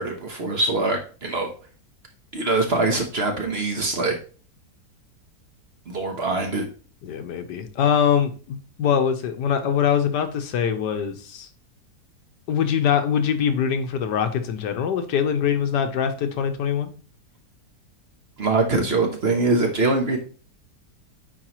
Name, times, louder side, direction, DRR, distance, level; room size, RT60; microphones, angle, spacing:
voice 1, 0.0-1.5 2.3-4.1 5.9-6.6 18.4-20.2, right 3 dB, 45° right, 3 dB, 1.1 m, -23 dB
voice 2, 7.0-11.5 12.5-16.9, left 8 dB, 85° left, 7 dB, 1.5 m, -23 dB
8.9 x 4.6 x 3.0 m, 0.39 s
omnidirectional pair, 1.8 m